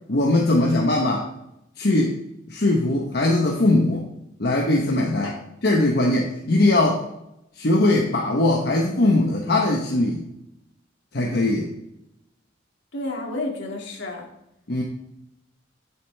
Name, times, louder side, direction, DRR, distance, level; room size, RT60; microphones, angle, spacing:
voice 1, 0.1-1.3 1.8-2.2 2.5-4.1 4.4-5.4 5.6-7.0 7.6-10.2 11.1-11.7 14.7-14.8, left 2 dB, 60° left, 0 dB, 1.0 m, -20 dB
voice 2, 12.9-14.3, left 2 dB, 75° left, 0 dB, 2.2 m, -31 dB
11.0 x 7.7 x 3.4 m, 0.86 s
head